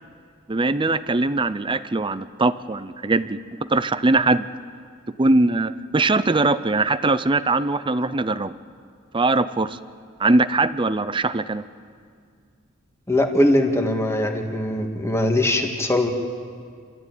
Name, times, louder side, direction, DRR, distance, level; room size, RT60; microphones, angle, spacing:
voice 1, 0.5-3.4 3.7-4.5 5.2-8.5 9.1-9.8 10.2-11.6, right 2 dB, 25° right, 13 dB, 0.6 m, -21 dB
voice 2, 13.1-16.1, left 1 dB, 15° left, 3 dB, 2.0 m, -21 dB
28.5 x 14.0 x 9.2 m, 2.1 s
head